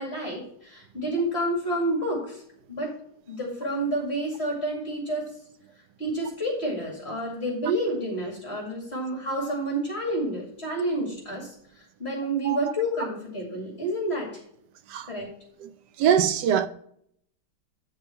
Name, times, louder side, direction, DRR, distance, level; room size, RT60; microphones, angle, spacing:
voice 1, 0.0-2.4 2.7-3.0 3.3-5.3 6.0-14.3 15.1-15.3, right 1 dB, 35° left, 2.4 m, -29 dB
voice 2, 16.0-16.7, right 8 dB, 75° right, 1.1 m, -22 dB
9.1 x 5.5 x 4.3 m
omnidirectional pair, 1.9 m